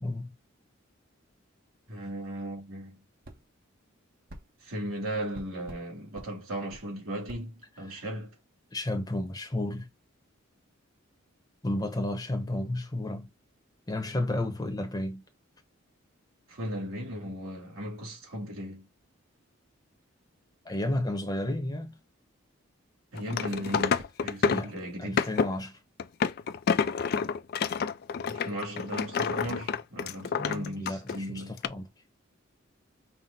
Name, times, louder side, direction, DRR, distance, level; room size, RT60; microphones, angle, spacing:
voice 1, 1.9-3.0 4.6-8.4 16.5-18.9 23.1-25.3 28.3-31.5, right 1 dB, 85° right, 2.9 m, -37 dB
sound 1, 3.2-3.4 4.3-4.5 5.3-5.9 6.2-6.3 6.7-6.9 7.3-7.4, right 1 dB, 45° right, 0.7 m, -45 dB
voice 2, 8.7-9.9 11.6-13.3 13.9-15.2 20.6-22.0 23.4-23.5 24.5-24.7 25.0-25.8 30.4-31.9, left 1 dB, 20° left, 0.8 m, -32 dB
sound 2, 23.2-24.8 25.2-25.5 26.0-31.2 31.6-31.7, left 6 dB, 45° left, 0.3 m, -28 dB
5.7 x 2.1 x 3.9 m
head